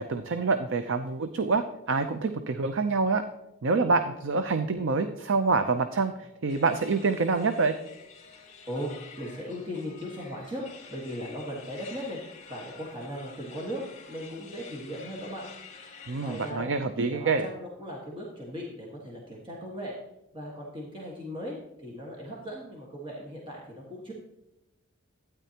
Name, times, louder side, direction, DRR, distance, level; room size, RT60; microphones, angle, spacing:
voice 1, 0.0-3.2 3.6-7.7 16.1-17.5, right 4 dB, 60° right, 9 dB, 0.5 m, -26 dB
sound 1, 6.5-16.5, left 5 dB, 30° left, 2.3 m, -49 dB
voice 2, 8.7-12.2 12.5-15.5 16.1-16.7 17.0-19.9 20.3-21.6 21.8-24.1, equal, 25° right, -4 dB, 1.6 m, -38 dB
12.5 x 9.3 x 2.9 m, 0.92 s
head